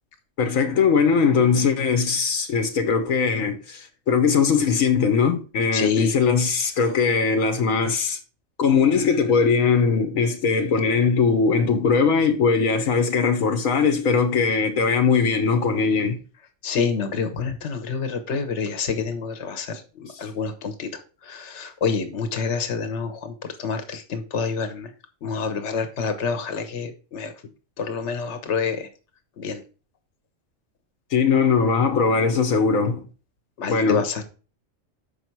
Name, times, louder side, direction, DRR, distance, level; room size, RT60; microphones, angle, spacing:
voice 1, 0.4-8.2 8.6-16.2 31.1-33.1 33.7-34.0, left 5 dB, 80° left, 1.3 m, -20 dB
voice 2, 5.7-6.1 16.6-20.9 21.2-23.3 23.6-24.9 25.2-27.3 27.8-28.9 29.4-29.6 33.6-34.2, left 5 dB, 60° left, 1.3 m, -27 dB
6.9 x 5.5 x 4.5 m
omnidirectional pair, 1.4 m